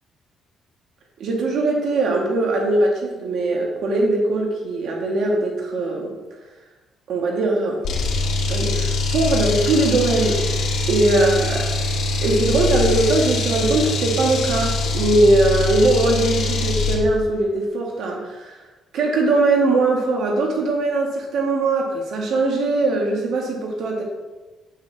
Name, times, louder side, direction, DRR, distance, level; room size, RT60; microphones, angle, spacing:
voice 1, 1.2-6.1 7.1-7.8 8.5-10.4 10.9-11.7 12.2-18.6 18.9-24.0, right 2 dB, 70° right, 0 dB, 1.7 m, -20 dB
sound 1, 7.8-17.0, left 2 dB, 70° left, 2.0 m, -23 dB
8.2 x 8.2 x 3.4 m, 1.2 s
cardioid pair, 135°, 0 cm